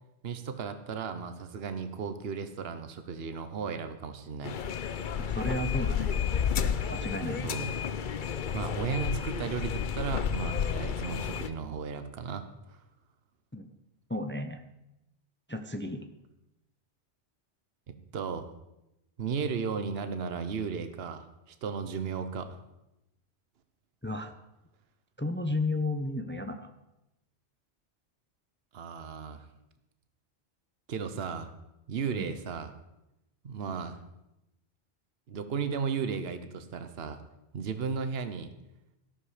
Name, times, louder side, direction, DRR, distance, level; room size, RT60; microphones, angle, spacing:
voice 1, 0.2-4.6 7.4-7.7 8.5-12.8 17.9-18.5 19.2-22.6 28.7-29.5 30.9-31.5 31.9-32.7 33.4-34.0 35.3-37.2 37.5-38.5, right 6 dB, 65° right, 9 dB, 1.2 m, -35 dB
sound 1, 4.4-11.5, left 7 dB, 50° left, 0.8 m, -31 dB
voice 2, 5.2-6.1 6.9-7.5 13.5-13.7 14.1-14.6 15.5-16.1 24.0-24.3 25.2-26.7 32.1-32.3, left 2 dB, 10° left, 7 dB, 0.7 m, -33 dB
13.0 x 12.5 x 5.0 m, 0.91 s
omnidirectional pair, 1.2 m